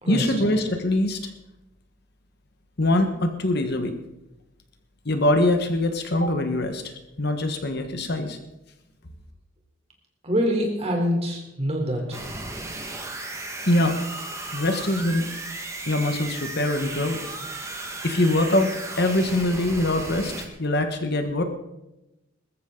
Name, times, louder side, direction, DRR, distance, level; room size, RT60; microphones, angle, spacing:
voice 1, 0.1-1.3 2.8-3.9 5.0-6.8 7.2-8.4 13.7-14.0 14.5-15.3 15.9-17.2 18.0-18.7 18.9-20.3 20.6-21.4, left 1 dB, 55° left, 6 dB, 1.5 m, -23 dB
voice 2, 10.2-12.2, equal, 30° right, 1 dB, 3.7 m, -25 dB
sound 1, 12.1-20.5, right 2 dB, 15° right, 1.6 m, -35 dB
20.5 x 14.0 x 3.9 m, 0.94 s
head